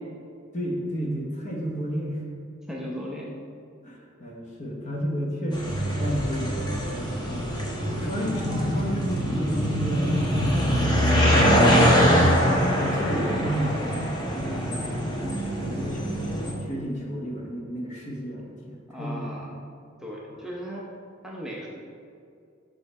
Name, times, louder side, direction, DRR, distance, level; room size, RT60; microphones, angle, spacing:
voice 1, 0.5-2.2 3.8-7.6 8.0-10.1 10.5-16.3 16.6-19.3 20.3-20.4, equal, 40° left, -1 dB, 1.1 m, -32 dB
voice 2, 2.7-3.3 18.9-19.7 20.0-20.9 21.2-21.7, equal, 5° right, -4 dB, 0.6 m, -36 dB
sound 1, 5.5-16.5, equal, 20° left, 1.0 m, -23 dB
sound 2, 5.6-10.6 11.1-11.2, right 2 dB, 80° right, 0.7 m, -37 dB
5.7 x 5.4 x 4.1 m, 2.3 s
head